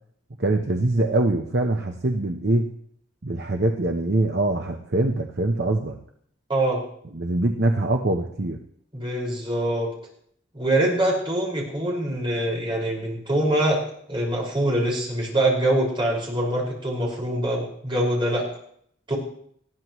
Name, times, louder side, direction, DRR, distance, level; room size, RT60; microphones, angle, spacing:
voice 1, 0.4-2.7 3.2-6.0 7.1-8.6, right 2 dB, 55° right, 3 dB, 0.9 m, -23 dB
voice 2, 6.5-6.8 8.9-9.9 10.5-13.8 14.1-18.5 19.1-19.2, right 1 dB, 25° right, -3 dB, 5.6 m, -24 dB
20.0 x 14.0 x 3.1 m, 0.65 s
head